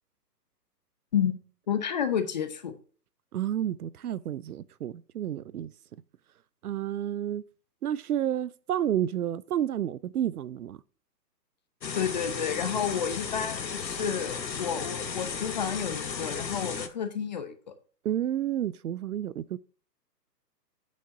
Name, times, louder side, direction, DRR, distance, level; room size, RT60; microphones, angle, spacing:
voice 1, 1.7-2.7 11.9-17.5, left 8 dB, 30° left, 0.6 m, -30 dB
voice 2, 3.3-5.7 6.6-7.4 7.8-10.8 18.0-19.6, right 11 dB, 65° right, 0.5 m, -30 dB
sound 1, 11.8-16.9, left 6 dB, 90° left, 1.0 m, -34 dB
8.5 x 6.5 x 2.7 m
figure-of-eight pair, 135°, 50 cm